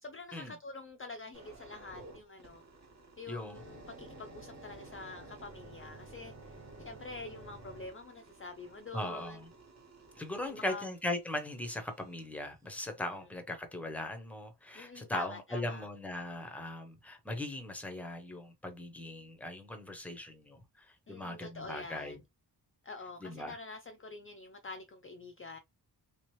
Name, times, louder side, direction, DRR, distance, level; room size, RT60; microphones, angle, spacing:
voice 1, 0.0-2.6 3.2-9.4 10.4-10.9 14.7-15.9 21.1-22.2 22.8-25.6, left 3 dB, 30° left, 0.4 m, -46 dB
sound 1, 1.3-12.3 12.8-13.0, right 2 dB, 40° right, 1.1 m, -53 dB
voice 2, 3.3-3.6 8.9-9.5 10.2-22.2 23.2-23.6, left 1 dB, 5° left, 0.7 m, -39 dB
3.4 x 3.0 x 3.0 m
wide cardioid pair, 175°, 41 cm